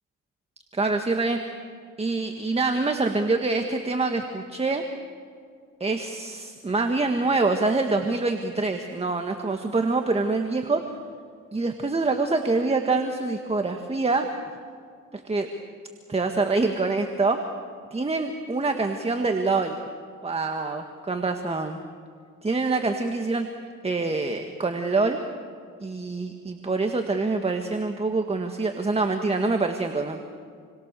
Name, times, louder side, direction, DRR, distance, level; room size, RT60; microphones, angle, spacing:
voice 1, 0.7-1.6 2.0-4.8 5.8-10.9 11.5-14.3 15.1-15.5 16.1-17.4 17.9-19.8 20.2-21.8 22.4-23.5 23.8-25.2 25.8-30.2, right 3 dB, 20° right, 5 dB, 1.8 m, -25 dB
29.0 x 23.0 x 6.9 m, 2.1 s
cardioid pair, 90°, 30 cm